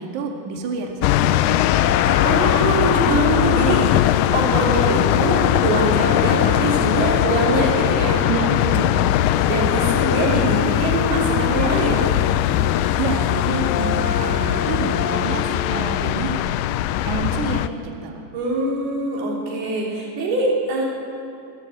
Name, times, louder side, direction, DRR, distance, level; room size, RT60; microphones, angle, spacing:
voice 1, 0.0-1.7 8.3-9.1 13.0-16.4 17.0-18.3, right 5 dB, 55° right, 1 dB, 3.1 m, -28 dB
sound 1, 1.0-17.7, left 13 dB, 80° left, 1.9 m, -20 dB
sound 2, 1.7-15.9, left 5 dB, 50° left, 3.3 m, -30 dB
voice 2, 2.2-3.8 4.3-8.2 9.5-12.0 18.3-20.8, right 2 dB, 80° right, -3 dB, 5.6 m, -23 dB
26.5 x 13.5 x 8.0 m, 2.4 s
omnidirectional pair, 4.4 m